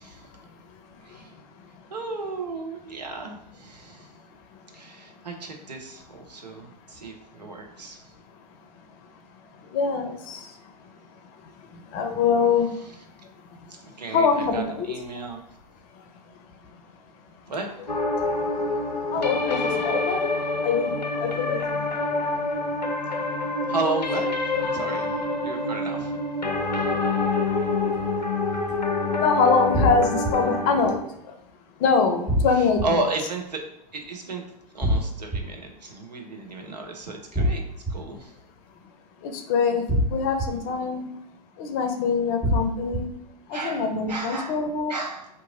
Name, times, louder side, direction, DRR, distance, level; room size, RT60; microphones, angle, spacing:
voice 1, 0.0-1.9 4.0-5.2 6.5-6.6 6.9-7.0 7.4-7.5 8.3-9.1 9.5-15.2 15.9-16.0 16.3-16.5 18.2-23.7 24.5-24.8 26.5-31.4 31.8-33.0 39.2-41.1 41.6-43.1 43.5-44.9, left 5 dB, 40° left, 5 dB, 0.5 m, -27 dB
voice 2, 1.9-4.1 4.7-8.1 13.7-15.4 17.5-17.7 23.7-26.1 32.6-33.6 33.9-34.4 34.7-37.6 37.9-38.3 43.5-44.6 44.9-45.3, right 3 dB, 80° right, 3 dB, 0.7 m, -33 dB
sound 1, 17.9-31.0, left 3 dB, 85° left, 0.5 m, -27 dB
sound 2, 29.7-30.3 32.3-32.9 34.8-35.4 37.3-37.9 39.9-40.5 42.4-43.0, equal, 5° right, 0.6 m, -23 dB
2.8 x 2.5 x 3.7 m, 0.78 s
figure-of-eight pair, 90°, 21 cm